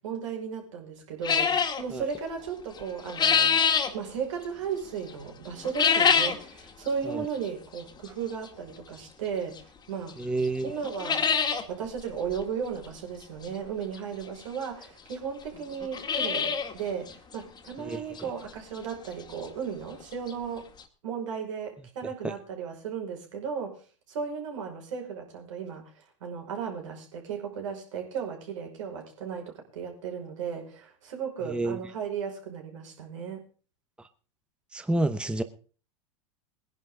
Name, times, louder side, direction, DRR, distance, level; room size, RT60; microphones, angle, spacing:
voice 1, 0.0-3.6 3.9-10.2 10.6-11.3 11.7-20.7 21.0-23.7 24.1-33.4, right 6 dB, 75° right, 2 dB, 5.4 m, -35 dB
sound 1, 1.2-1.8 2.8-3.9 5.6-6.4 6.9-7.0 7.8-7.9 9.6-9.7 10.1-10.2 10.4-10.5 10.8-11.6 12.0-12.1 12.3-12.4 13.9-14.0 14.8-14.9 15.1-15.2 15.7-16.7 17.1-17.2 17.7-17.8 18.2-18.3 20.0-20.1 20.3-20.4 20.8-20.9, left 6 dB, 25° left, 2.1 m, -24 dB
voice 2, 10.2-10.7 17.8-18.0 22.2-22.3 31.4-31.8 34.0-34.1 34.7-35.4, right 2 dB, 5° right, 10 dB, 1.0 m, -29 dB
20.5 x 11.0 x 3.8 m, 0.38 s
hypercardioid pair, 100°, 16 cm